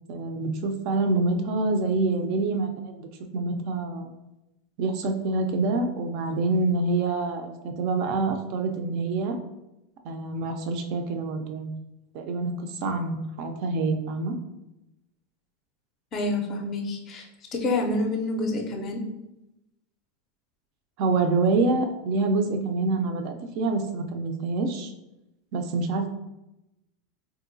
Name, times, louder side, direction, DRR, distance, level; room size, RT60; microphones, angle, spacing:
voice 1, 0.1-4.1 4.8-9.4 10.0-11.8 12.1-12.5 12.8-14.4 21.0-24.9 25.5-26.1, right 3 dB, 45° right, 5 dB, 0.4 m, -26 dB
voice 2, 16.1-17.3 17.5-19.0, left 2 dB, 25° left, 2 dB, 0.5 m, -28 dB
3.7 x 2.6 x 2.6 m, 0.93 s
supercardioid pair, 170°, 0 cm